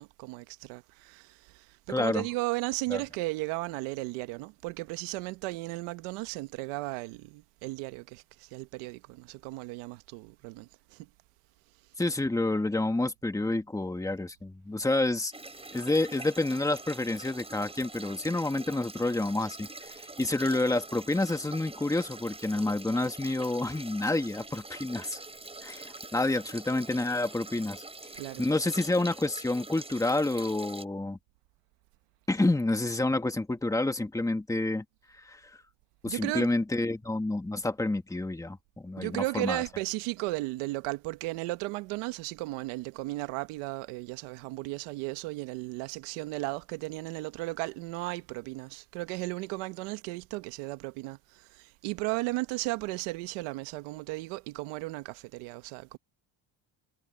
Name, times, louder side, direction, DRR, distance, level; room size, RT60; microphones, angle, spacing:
voice 1, 0.0-11.1 28.1-28.5 36.0-36.5 39.0-56.0, right 21 dB, 85° right, 1.3 m, -35 dB
voice 2, 1.9-2.3 2.9-3.0 12.0-15.3 15.7-25.2 25.6-27.8 28.4-31.2 32.3-34.8 35.2-35.6 36.0-38.6 38.8-39.6, left 2 dB, 5° left, 1.8 m, -29 dB
sound 1, 15.3-30.8, right 2 dB, 10° right, 5.8 m, -45 dB
cardioid pair, 130°, 50 cm